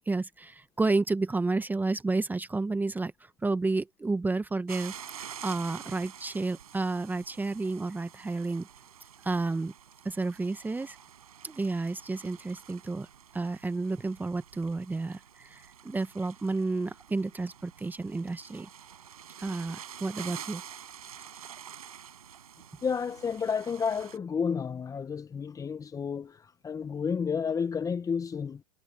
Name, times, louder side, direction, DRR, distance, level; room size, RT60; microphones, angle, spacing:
voice 1, 0.1-8.7 9.2-9.7 10.0-11.0 11.4-13.1 13.3-18.7 19.4-20.6, right 3 dB, 10° right, 1.2 m, -31 dB
sound 1, 4.7-24.2, right 8 dB, 85° right, 6.9 m, -48 dB
voice 2, 22.8-26.4 26.6-28.6, left 6 dB, 20° left, 1.2 m, -31 dB
hypercardioid pair, 105°, 18 cm